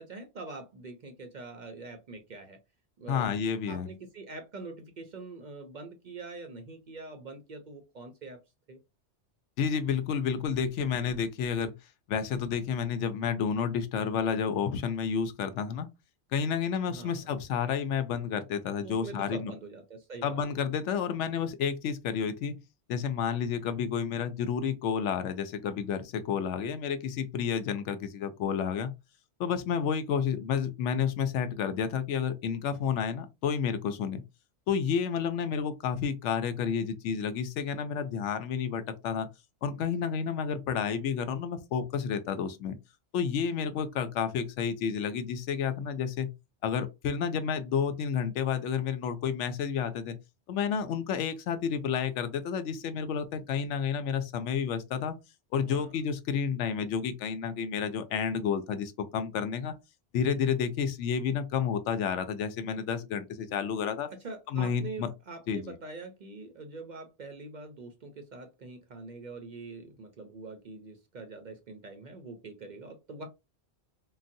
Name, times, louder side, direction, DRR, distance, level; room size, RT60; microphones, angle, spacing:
voice 1, 0.0-2.6 3.0-3.4 3.7-8.4 8.7-8.8 16.9-17.3 18.8-20.4 55.5-55.9 64.1-73.3, right 3 dB, 50° right, 0.6 m, -44 dB
voice 2, 3.1-3.9 9.6-11.7 12.1-15.9 16.3-19.5 20.2-22.6 22.9-28.9 29.4-34.2 34.7-39.3 39.6-42.8 43.1-46.3 46.6-50.2 50.5-55.1 55.5-59.7 60.1-64.1 64.5-65.1 65.5-65.8, left 7 dB, 90° left, 0.9 m, -30 dB
3.8 x 2.0 x 2.6 m
omnidirectional pair, 1.2 m